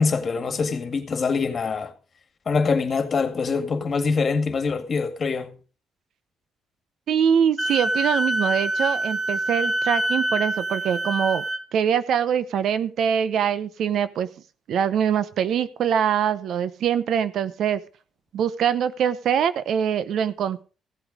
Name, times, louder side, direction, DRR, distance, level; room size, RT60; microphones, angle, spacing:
voice 1, 0.0-1.9 2.5-5.5, left 4 dB, 45° left, 2.0 m, -24 dB
voice 2, 7.1-11.5 11.7-14.3 14.7-17.8 18.3-20.6, right 8 dB, 70° right, 0.8 m, -23 dB
Wind instrument woodwind instrument, 7.6-11.6, right 1 dB, 10° left, 1.2 m, -25 dB
16.0 x 8.1 x 5.1 m
cardioid pair, 90°, 0 cm